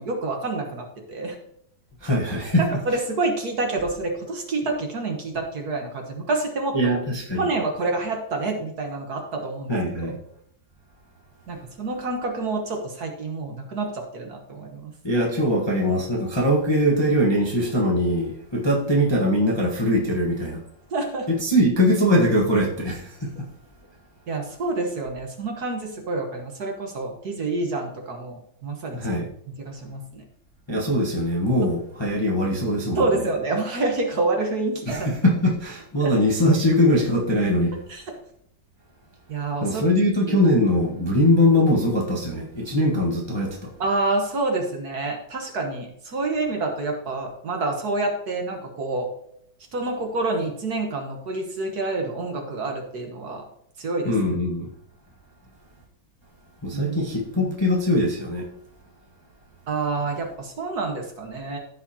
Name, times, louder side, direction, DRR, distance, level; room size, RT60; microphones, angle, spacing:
voice 1, 0.0-1.4 2.6-7.0 7.4-9.8 10.0-10.2 11.5-14.9 20.9-21.3 24.3-29.1 29.6-30.2 32.2-32.3 33.0-35.1 36.0-36.1 37.9-38.0 39.3-39.8 40.3-40.4 43.8-49.1 49.7-53.4 53.8-54.1 56.7-57.0 57.4-57.5 59.7-61.6, right 3 dB, 50° right, 1.6 m, -28 dB
voice 2, 2.0-2.7 6.7-7.5 9.7-10.2 15.0-20.6 21.3-23.5 28.9-29.3 30.7-33.1 34.9-37.8 39.6-43.7 54.0-54.7 56.6-58.5, left 1 dB, 15° left, 0.9 m, -21 dB
14.5 x 5.1 x 2.8 m
omnidirectional pair, 2.2 m